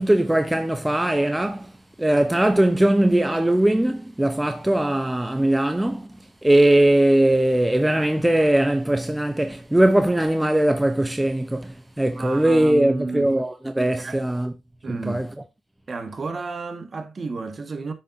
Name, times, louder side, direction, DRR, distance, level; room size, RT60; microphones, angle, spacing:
voice 1, 0.0-1.7 2.0-6.1 6.4-14.5 15.1-15.3, right 1 dB, 10° right, 0.7 m, -20 dB
voice 2, 12.1-13.3 14.0-14.2 14.8-15.3 15.9-17.9, right 3 dB, 40° right, 1.5 m, -32 dB
8.5 x 6.6 x 2.7 m
supercardioid pair, 65°, 0 cm